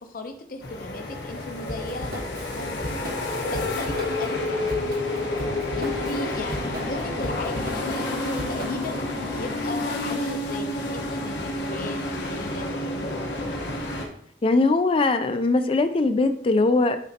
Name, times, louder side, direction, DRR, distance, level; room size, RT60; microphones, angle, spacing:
voice 1, 0.0-4.7 5.8-13.0, left 2 dB, 50° left, 5 dB, 0.7 m, -37 dB
sound 1, 0.6-14.1, left 2 dB, 70° left, 1.1 m, -29 dB
Drum kit / Drum, 1.7-9.0, equal, 55° right, 1.1 m, -37 dB
voice 2, 14.4-17.0, left 3 dB, 30° left, 9 dB, 0.4 m, -21 dB
8.9 x 4.2 x 2.8 m, 0.68 s
head